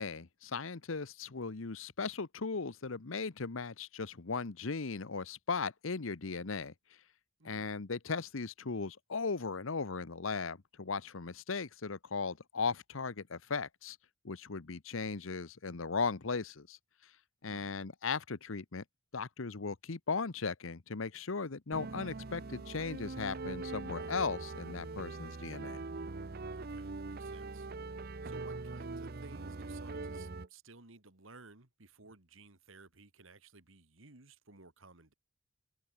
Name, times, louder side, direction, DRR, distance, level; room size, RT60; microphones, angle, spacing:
voice 1, 0.0-6.7 7.4-14.0 14.2-16.8 17.4-18.8 19.1-25.8, left 4 dB, 80° left, 1.0 m, -37 dB
voice 2, 7.4-7.7 17.5-17.7 26.5-35.1, right 3 dB, 80° right, 2.5 m, -57 dB
sound 1, 21.7-30.5, right 3 dB, 50° right, 0.8 m, -42 dB
head